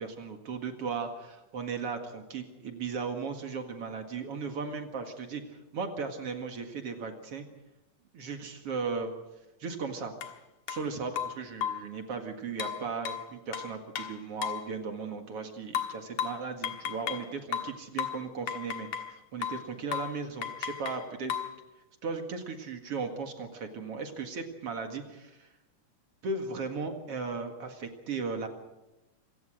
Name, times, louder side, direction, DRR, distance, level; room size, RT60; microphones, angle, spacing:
voice 1, 0.0-7.5 8.1-9.1 9.6-10.1 10.7-21.4 22.0-25.5 26.2-28.5, right 4 dB, 50° right, 5 dB, 2.7 m, -36 dB
sound 1, 10.2-10.3 10.7-10.8 11.2-11.9 12.6-14.7 15.8-17.3 17.5-19.1 19.4-19.7 19.9-20.2 20.4-21.6, left 9 dB, 75° left, 2.9 m, -35 dB
26.0 x 17.0 x 6.4 m, 1.0 s
omnidirectional pair, 3.6 m